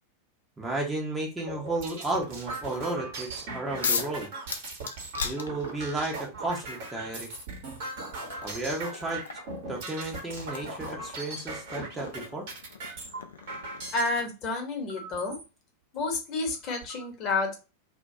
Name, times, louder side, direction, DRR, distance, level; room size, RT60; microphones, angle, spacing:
voice 1, 0.6-4.3 5.2-7.3 8.4-9.2 9.7-12.5, right 2 dB, 10° right, -1 dB, 0.6 m, -33 dB
sound 1, 1.4-14.2 14.9-15.4 16.0-16.1 16.4-17.0, right 3 dB, 55° right, 0.9 m, -39 dB
sound 2, 3.8-4.2 4.5-6.0 7.2-7.3 7.8-14.4, left 5 dB, 70° left, 0.3 m, -37 dB
voice 2, 13.9-15.4 15.9-17.5, left 3 dB, 40° left, 2 dB, 0.8 m, -30 dB
2.2 x 2.1 x 2.6 m, 0.30 s
figure-of-eight pair, 90°, 0 cm